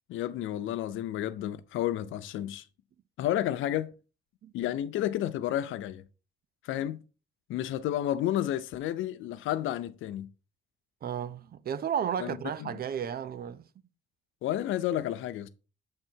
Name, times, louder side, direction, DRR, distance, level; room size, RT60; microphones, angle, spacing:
voice 1, 0.1-2.6 3.2-3.9 4.5-6.0 6.6-7.0 7.5-10.3 12.2-12.8 14.4-15.5, left 12 dB, 85° left, 0.6 m, -31 dB
voice 2, 11.0-13.7, right 8 dB, 50° right, 0.6 m, -33 dB
7.7 x 3.5 x 4.4 m
cardioid pair, 90°, 20 cm